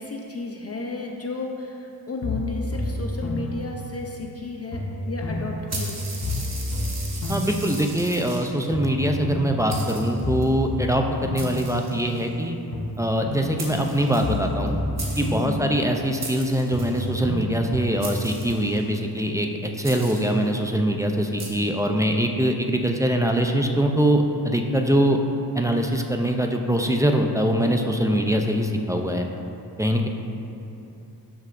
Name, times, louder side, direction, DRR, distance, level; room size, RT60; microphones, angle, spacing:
voice 1, 0.0-4.8 5.1-6.0 15.4-15.8 30.0-30.1, left 3 dB, 35° left, 1 dB, 0.6 m, -33 dB
sound 1, 2.2-4.4 4.7-8.4 8.7-12.4 12.7-16.4 16.7-18.3, left 1 dB, 55° left, 1.2 m, -30 dB
sound 2, 5.7-8.7 9.3-9.4 9.7-10.4 11.4-12.3 13.3-13.4 13.6-14.7 15.0-15.5 16.2-17.1 18.0-18.9 19.8-20.4 21.4-21.5, right 3 dB, 40° right, 1.2 m, -37 dB
voice 2, 7.3-12.6 13.0-14.8 15.2-25.2 25.6-29.3 29.8-30.1, right 1 dB, 10° right, 3 dB, 0.4 m, -23 dB
12.5 x 6.2 x 2.5 m, 2.8 s
wide cardioid pair, 120°, 40 cm